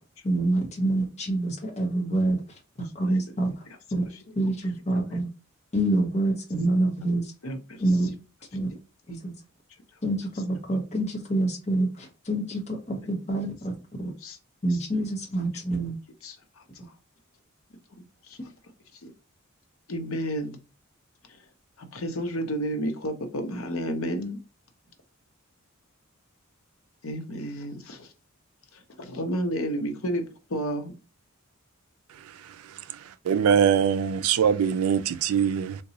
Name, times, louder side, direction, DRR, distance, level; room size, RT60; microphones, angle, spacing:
voice 1, 0.2-2.4 2.8-3.5 3.9-4.1 4.4-5.3 5.7-7.3 7.8-8.1 8.5-8.7 9.1-9.3 10.0-14.1 14.6-16.0, right 1 dB, 30° left, 0.8 m, -26 dB
voice 2, 7.4-7.8 14.2-14.4 14.7-14.8 16.2-16.6 18.2-19.1 19.9-20.6 21.3-21.4 21.8-24.4 27.0-28.1 28.7-30.9, equal, 75° left, 0.7 m, -32 dB
voice 3, 33.3-35.8, right 7 dB, 85° right, 0.4 m, -22 dB
3.8 x 2.2 x 2.7 m
head